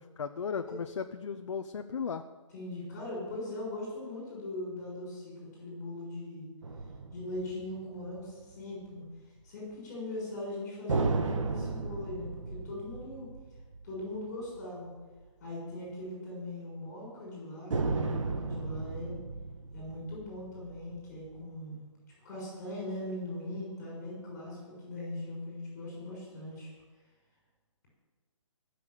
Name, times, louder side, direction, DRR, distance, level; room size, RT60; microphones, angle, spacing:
voice 1, 0.2-2.2, left 6 dB, 60° left, 7 dB, 0.8 m, -36 dB
voice 2, 2.5-6.4 7.1-9.0 9.4-13.3 13.8-14.9 15.4-19.2 19.7-21.8 22.2-26.7, left 1 dB, 30° left, -4 dB, 6.5 m, -40 dB
sound 1, 6.6-8.5 10.9-14.6 15.0-15.1 17.7-21.4, right 3 dB, 70° right, 1.7 m, -35 dB
18.0 x 7.0 x 9.1 m, 1.3 s
hypercardioid pair, 170°, 17 cm